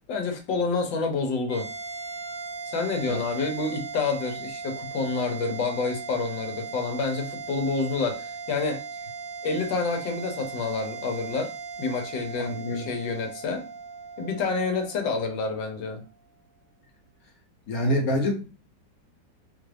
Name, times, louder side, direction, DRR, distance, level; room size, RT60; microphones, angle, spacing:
voice 1, 0.1-1.7 2.7-8.8 9.4-11.5 11.8-13.6 14.2-16.0, left 4 dB, 85° left, 1.5 m, -28 dB
sound 1, 1.5-16.1, right 5 dB, 45° left, 0.6 m, -38 dB
voice 2, 12.4-12.8 17.7-18.3, left 1 dB, 60° left, 1.1 m, -26 dB
4.2 x 2.4 x 3.3 m
omnidirectional pair, 2.0 m